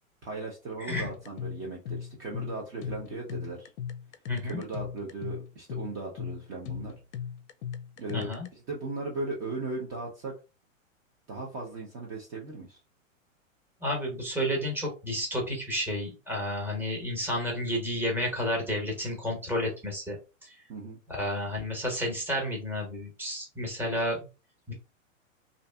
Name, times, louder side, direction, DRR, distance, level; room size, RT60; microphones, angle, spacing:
voice 1, 0.2-3.7 4.4-6.9 8.0-10.3 11.3-12.8 20.7-21.0, right 3 dB, 30° right, -1 dB, 0.7 m, -37 dB
voice 2, 0.8-1.1 4.3-4.6 8.1-8.5 13.8-20.5 21.1-24.2 24.7-24.8, equal, 5° right, -1 dB, 1.0 m, -31 dB
sound 1, 0.9-8.5, left 8 dB, 60° left, 0.5 m, -38 dB
2.6 x 2.5 x 2.2 m, 0.31 s
hypercardioid pair, 115°, 40 cm